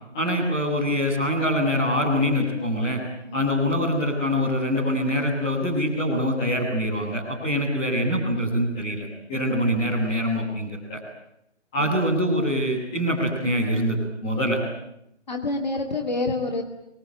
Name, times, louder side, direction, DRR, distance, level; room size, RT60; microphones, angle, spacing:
voice 1, 0.1-3.0 3.3-11.0 11.7-14.6, equal, 5° left, -9 dB, 1.4 m, -24 dB
voice 2, 15.3-16.6, left 2 dB, 35° left, 4 dB, 2.5 m, -27 dB
28.5 x 23.0 x 9.1 m, 0.80 s
figure-of-eight pair, 170°, 36 cm